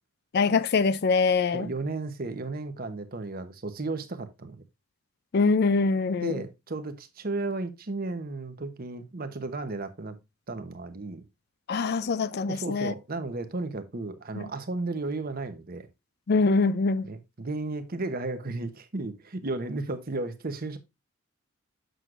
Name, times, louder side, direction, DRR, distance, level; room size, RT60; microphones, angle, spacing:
voice 1, 0.3-1.7 5.3-6.4 11.7-12.9 14.4-14.5 16.3-17.1, left 4 dB, 50° left, 0.4 m, -24 dB
voice 2, 1.5-4.6 6.2-10.2 10.5-11.2 12.5-15.9 17.0-20.8, right 2 dB, 45° right, 0.9 m, -34 dB
7.8 x 6.3 x 2.5 m
head